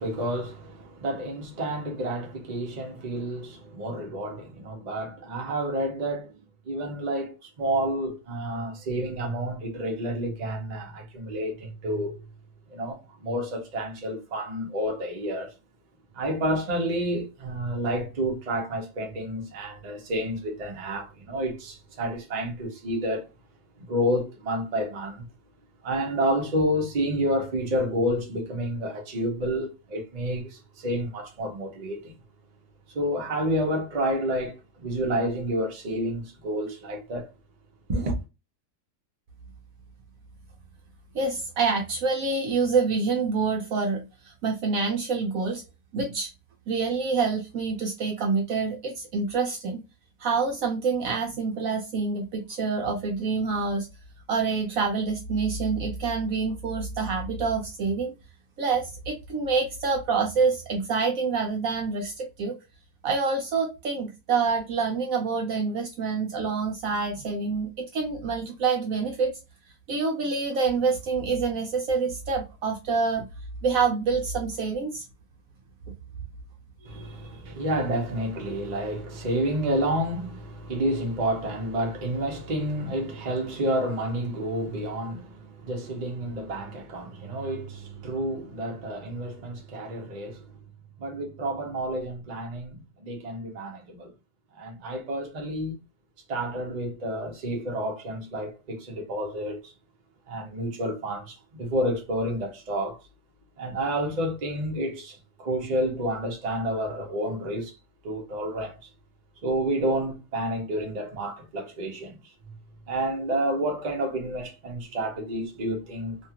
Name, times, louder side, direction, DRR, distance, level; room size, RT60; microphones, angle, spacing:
voice 1, 0.0-6.3 6.7-12.2 12.7-15.5 16.1-23.2 23.8-25.3 25.8-32.2 32.9-37.3 37.9-38.2 76.9-90.5 91.0-94.1 94.6-95.7 96.3-99.7 100.3-103.0 103.6-107.7 108.0-108.8 109.4-112.2 112.4-112.5 112.9-116.2, right 1 dB, 45° right, 0.5 m, -29 dB
voice 2, 41.1-45.6 45.9-46.3 46.7-49.8 50.2-53.9 54.3-58.1 58.6-62.6 63.0-69.4 69.9-73.3 73.6-75.0 76.8-77.1, right 4 dB, 70° right, 0.8 m, -27 dB
2.8 x 2.3 x 2.7 m
omnidirectional pair, 1.8 m